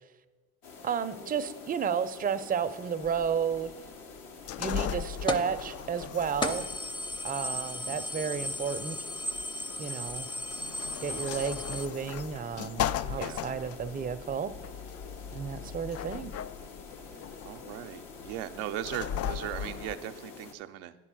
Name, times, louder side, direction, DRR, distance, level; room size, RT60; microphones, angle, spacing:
sound 1, 0.6-20.5, left 4 dB, 65° left, 1.2 m, -47 dB
voice 1, 0.8-3.7 4.6-6.7 7.2-9.0 9.8-10.3 11.0-14.5 15.3-16.3, right 7 dB, 25° right, 10 dB, 0.5 m, -32 dB
sound 2, 3.0-20.0, left 9 dB, 45° left, 0.4 m, -38 dB
sound 3, 5.3-5.6 6.0-6.1 6.4-11.9, left 1 dB, 15° left, 0.7 m, -35 dB
voice 2, 17.4-20.9, right 12 dB, 80° right, 8 dB, 0.5 m, -38 dB
9.8 x 4.5 x 6.1 m, 1.3 s
hypercardioid pair, 60°, 35 cm